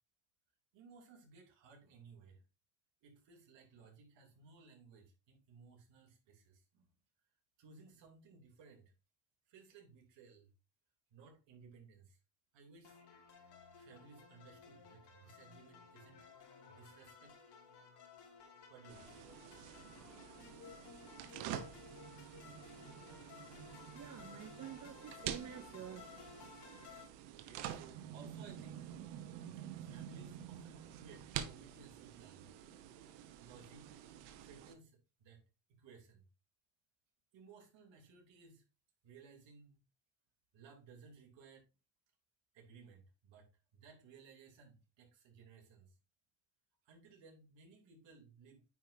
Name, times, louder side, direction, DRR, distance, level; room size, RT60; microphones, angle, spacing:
voice 1, 0.7-2.4 3.0-6.9 7.6-8.9 9.5-10.5 11.1-12.2 12.5-13.0 13.4-16.3 16.7-17.4 18.7-19.1 27.3-28.9 29.5-32.5 33.4-34.0 34.4-35.4 35.7-36.3 37.3-38.6 39.0-39.8 40.5-41.6 42.5-45.9 46.8-48.6, right 5 dB, 60° right, 3.3 m, -60 dB
sound 1, 12.8-27.1, left 5 dB, 50° left, 2.5 m, -57 dB
sound 2, 18.9-34.7, right 10 dB, 90° right, 1.1 m, -48 dB
voice 2, 23.9-26.5, right 9 dB, 35° right, 0.7 m, -49 dB
9.1 x 5.0 x 2.7 m
supercardioid pair, 100°, 50 cm